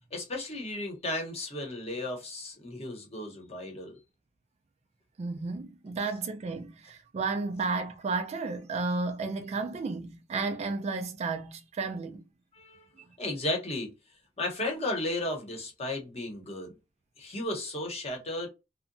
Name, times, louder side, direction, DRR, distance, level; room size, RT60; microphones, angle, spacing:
voice 1, 0.1-4.0 12.5-12.9 13.2-13.9 14.4-16.7 17.2-18.5, left 1 dB, 35° left, 0.9 m, -34 dB
voice 2, 5.2-12.2, right 4 dB, 35° right, 0.3 m, -32 dB
2.8 x 2.1 x 2.5 m
head